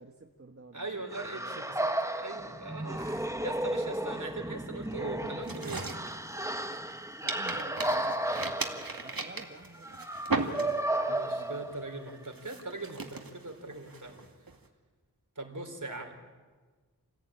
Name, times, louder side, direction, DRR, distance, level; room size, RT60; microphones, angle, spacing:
voice 1, 0.0-0.9 1.2-1.6 4.1-4.5 7.2-11.7, right 2 dB, 40° right, 2 dB, 1.6 m, -50 dB
voice 2, 0.7-1.9 2.2-5.9 11.1-14.1 15.4-16.1, right 2 dB, 55° right, 4 dB, 4.3 m, -40 dB
sound 1, 1.1-12.2, right 1 dB, 10° right, 1.2 m, -34 dB
sound 2, 5.4-6.9 7.3-11.1 11.4-11.8 12.3-14.6, right 3 dB, 75° right, 2.3 m, -37 dB
28.0 x 16.5 x 8.9 m, 1.4 s
wide cardioid pair, 60°, 35 cm